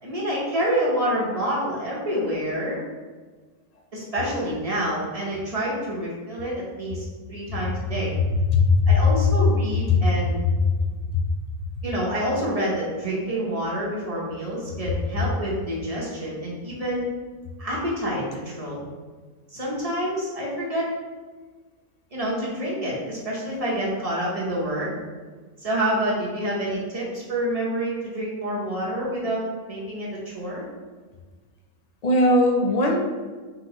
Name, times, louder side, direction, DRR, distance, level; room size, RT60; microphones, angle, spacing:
voice 1, 0.0-2.9 3.9-8.1 8.9-10.4 11.8-17.1 17.6-18.8 19.5-20.8 22.1-24.9 25.6-29.4 29.7-30.1 30.3-30.7, equal, 30° right, -6 dB, 0.9 m, -27 dB
voice 2, 8.5-9.0 9.9-10.0 10.6-10.7 32.0-33.0, left 3 dB, 50° left, 1 dB, 0.5 m, -18 dB
3.9 x 3.8 x 3.0 m, 1.4 s
omnidirectional pair, 1.4 m